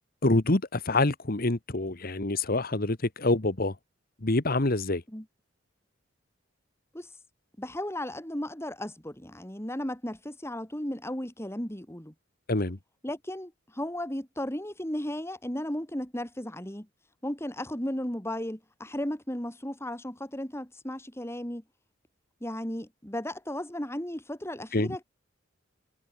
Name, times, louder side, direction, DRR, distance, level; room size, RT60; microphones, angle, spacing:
voice 1, 0.2-3.7 4.2-5.0 12.5-12.8 24.7-24.9, left 2 dB, 50° left, 1.5 m, -26 dB
voice 2, 7.6-12.1 13.0-16.9 17.2-21.6 22.4-25.0, left 1 dB, 15° left, 3.8 m, -35 dB
head